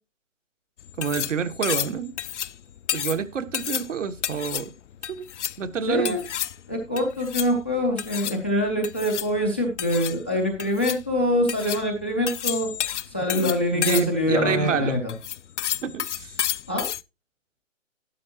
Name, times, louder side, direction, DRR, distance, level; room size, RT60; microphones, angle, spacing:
sound 1, 0.8-17.0, left 10 dB, 65° left, 0.6 m, -31 dB
voice 1, 1.0-2.1 2.9-4.7 5.1-5.3 5.6-6.2 13.4-15.0 15.8-16.4, right 7 dB, 70° right, 1.3 m, -28 dB
voice 2, 5.9-6.2 6.7-12.7 13.1-15.1 16.7-16.9, left 1 dB, 10° left, 0.4 m, -25 dB
12.0 x 11.0 x 2.8 m
hypercardioid pair, 155°, 39 cm